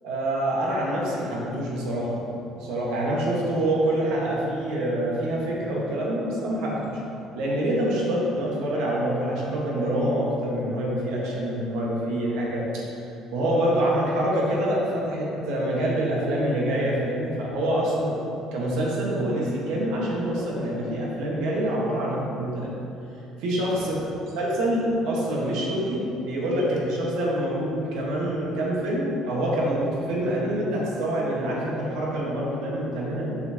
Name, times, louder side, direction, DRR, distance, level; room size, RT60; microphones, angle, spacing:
voice 1, 0.0-2.2 2.6-6.9 7.4-12.8 13.3-18.2 18.5-22.7 23.4-24.0 24.3-33.4, right 1 dB, 80° right, -4 dB, 1.5 m, -26 dB
7.2 x 5.6 x 2.9 m, 2.9 s
cardioid pair, 170°, 0 cm